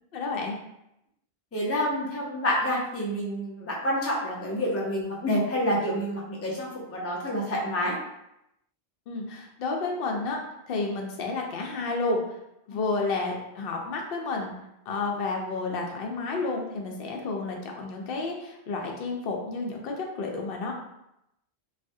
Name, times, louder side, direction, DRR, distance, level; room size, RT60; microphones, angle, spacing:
voice 1, 0.1-0.6 9.1-12.4 12.7-14.5 14.9-20.7, left 3 dB, 65° left, 1 dB, 0.7 m, -31 dB
voice 2, 1.5-8.0, equal, 20° left, -4 dB, 0.4 m, -28 dB
3.2 x 2.0 x 2.6 m, 0.84 s
omnidirectional pair, 1.1 m